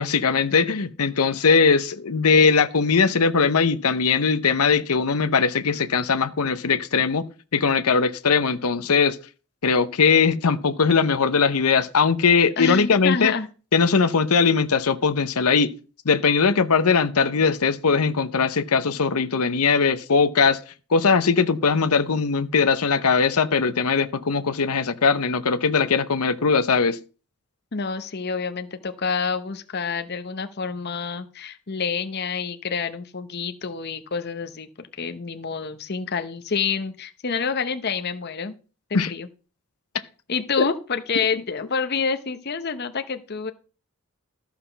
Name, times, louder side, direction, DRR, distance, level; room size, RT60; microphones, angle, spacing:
voice 1, 0.0-7.3 7.5-9.2 9.6-13.3 13.7-15.7 16.0-20.6 20.9-27.0 38.9-39.1 40.6-40.7, left 5 dB, 85° left, 0.8 m, -20 dB
voice 2, 12.6-13.5 27.7-38.5 38.9-39.3 40.3-43.5, left 5 dB, 45° left, 0.8 m, -28 dB
13.5 x 5.9 x 5.7 m
head